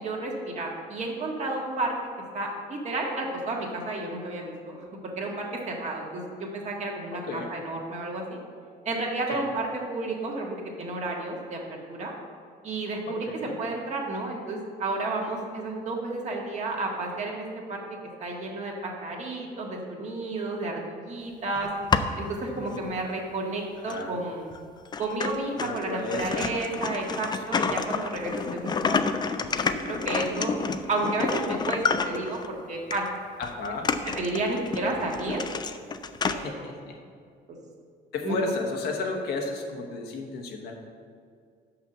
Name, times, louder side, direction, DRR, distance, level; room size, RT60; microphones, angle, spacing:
voice 1, 0.0-1.9 2.3-4.8 5.2-8.4 8.8-11.6 11.9-12.1 12.6-17.8 18.2-21.7 22.2-24.6 25.0-29.0 29.4-30.5 30.9-33.0 34.2-35.4 36.2-36.7 38.2-38.4, right 2 dB, 45° right, -1 dB, 1.6 m, -31 dB
voice 2, 7.1-7.5 9.3-9.4 13.1-13.6 22.5-22.8 23.9-24.1 25.6-26.6 27.5-27.7 33.4-33.9 36.3-37.0 38.1-40.7, left 3 dB, 75° left, 2 dB, 1.2 m, -33 dB
sound 1, 21.6-22.3 22.9-23.0 23.9-24.0 24.5-24.6 24.9-32.5 32.9-33.1 33.4-36.4, left 5 dB, 25° left, 0.4 m, -29 dB
5.8 x 5.7 x 6.7 m, 2.2 s
cardioid pair, 110°, 17 cm